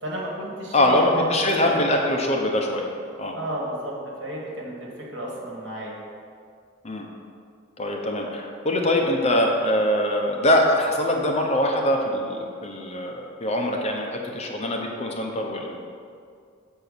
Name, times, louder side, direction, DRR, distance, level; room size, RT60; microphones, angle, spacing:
voice 1, 0.0-1.8 3.3-3.9 4.2-6.0, right 1 dB, 65° right, -3 dB, 1.8 m, -33 dB
voice 2, 0.7-2.9 3.2-3.3 6.8-7.1 7.8-15.8, left 1 dB, 30° left, 1 dB, 0.8 m, -23 dB
6.9 x 4.5 x 6.7 m, 2.3 s
head